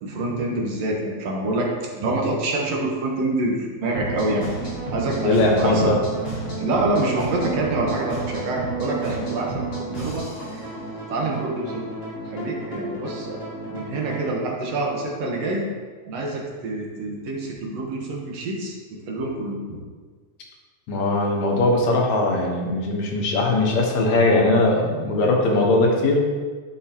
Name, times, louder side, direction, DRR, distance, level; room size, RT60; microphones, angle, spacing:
voice 1, 0.0-1.7 2.0-3.5 3.8-6.0 6.6-10.7 11.1-11.9 12.3-13.4 13.7-15.6 16.1-19.8, right 2 dB, 65° right, -1 dB, 2.2 m, -26 dB
sound 1, 3.9-14.3, right 2 dB, 35° left, 3.2 m, -31 dB
voice 2, 5.2-6.0 20.9-26.2, left 2 dB, 75° left, -1 dB, 2.4 m, -20 dB
10.5 x 6.7 x 2.9 m, 1.5 s
omnidirectional pair, 3.3 m